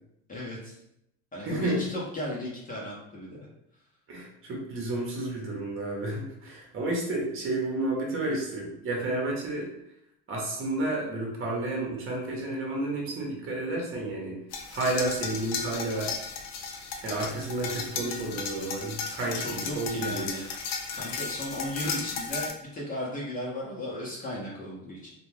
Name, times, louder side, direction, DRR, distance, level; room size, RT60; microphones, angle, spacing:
voice 1, 0.3-0.8 1.3-3.5 19.4-20.5 20.9-25.1, left 1 dB, 25° left, -4 dB, 0.8 m, -36 dB
voice 2, 1.4-1.8 4.1-9.7 10.3-14.4 14.7-16.1 17.0-20.3, right 2 dB, 35° right, -1 dB, 1.0 m, -31 dB
sound 1, 14.5-22.5, left 5 dB, 50° left, 0.5 m, -35 dB
2.5 x 2.3 x 3.2 m, 0.79 s
supercardioid pair, 95°, 35 cm